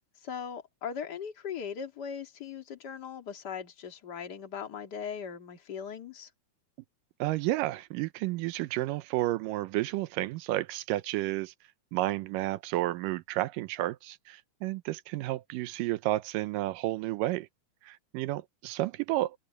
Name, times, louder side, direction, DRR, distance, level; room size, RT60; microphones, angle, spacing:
voice 1, 0.2-6.3, left 7 dB, 35° left, 2.2 m, -39 dB
voice 2, 7.2-11.5 11.9-17.5 17.8-19.4, right 17 dB, 85° right, 2.3 m, -31 dB
open air
omnidirectional pair, 3.8 m